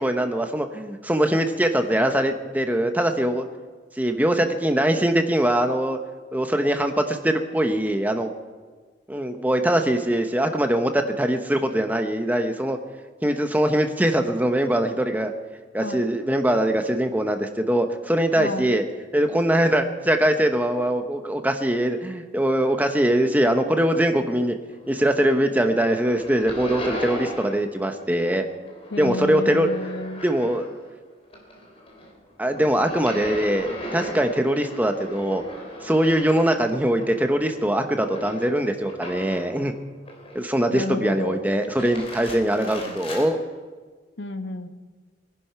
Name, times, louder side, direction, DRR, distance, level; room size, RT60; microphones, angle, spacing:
voice 1, 0.0-3.4 4.0-6.0 6.3-8.3 9.1-12.8 13.2-15.3 15.7-18.8 19.1-24.6 24.9-28.4 29.0-29.7 30.2-30.7 32.4-35.4 35.8-39.7 40.3-43.4, right 1 dB, 10° right, 6 dB, 0.9 m, -22 dB
voice 2, 18.4-18.7 28.9-30.2 40.7-41.5 42.4-42.5 42.8-43.0 44.2-44.7, left 2 dB, 75° left, 8 dB, 1.1 m, -31 dB
sound 1, 24.7-25.4 25.7-27.7 28.0-30.9 31.2-39.6 40.0-40.7 41.6-43.3, left 1 dB, 35° left, 3.2 m, -37 dB
22.0 x 10.5 x 5.8 m, 1.4 s
head